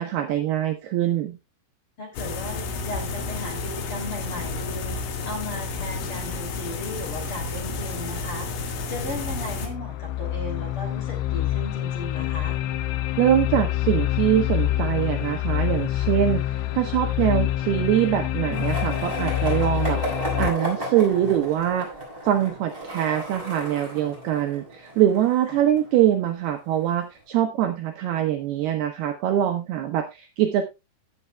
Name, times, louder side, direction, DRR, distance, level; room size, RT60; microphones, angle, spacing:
voice 1, 0.0-1.4 13.2-21.9 22.2-30.7, right 11 dB, 75° right, 5 dB, 2.4 m, -23 dB
voice 2, 2.0-8.5 8.9-12.6 25.5-25.6, left 1 dB, 35° left, 1 dB, 2.9 m, -36 dB
sound 1, 2.2-9.7, left 4 dB, 70° left, 3.8 m, -31 dB
sound 2, 9.1-20.5, left 13 dB, 90° left, 2.3 m, -26 dB
Skateboard, 18.5-26.5, equal, 10° right, 5.9 m, -34 dB
18.0 x 8.0 x 2.3 m, 0.24 s
omnidirectional pair, 5.5 m